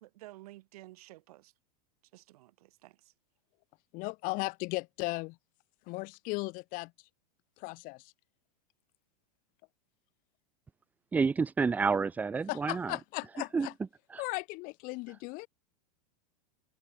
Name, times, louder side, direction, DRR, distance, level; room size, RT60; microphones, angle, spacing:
voice 1, 0.0-1.5 2.1-2.5 2.8-2.9, right 17 dB, 65° right, 1.7 m, -51 dB
voice 2, 3.9-5.4 5.9-6.9 7.6-8.1 12.5-13.7 14.2-15.5, left 25 dB, 40° left, 2.0 m, -36 dB
voice 3, 11.1-13.0 13.5-13.7 14.1-14.2, right 5 dB, 10° right, 0.4 m, -29 dB
supercardioid pair, 145°, 21 cm